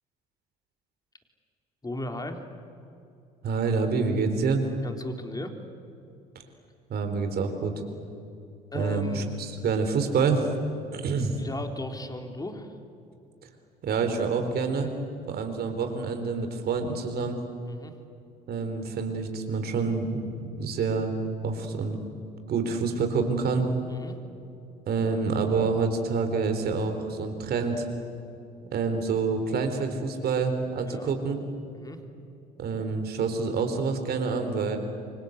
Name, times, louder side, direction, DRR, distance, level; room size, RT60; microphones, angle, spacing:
voice 1, 1.8-2.4 4.8-5.6 8.7-9.4 11.4-12.7 17.6-17.9 23.9-24.2 30.8-31.1 31.7-32.0, left 1 dB, 20° left, 5 dB, 3.8 m, -36 dB
voice 2, 3.4-4.7 6.9-7.7 8.7-10.5 10.9-11.4 13.8-14.9 15.3-17.4 18.5-21.1 21.4-22.0 22.5-23.7 24.9-27.9 28.7-31.4 32.6-34.8, right 4 dB, 55° right, 6 dB, 4.1 m, -27 dB
29.0 x 24.5 x 8.2 m, 2.7 s
hypercardioid pair, 60°, 20 cm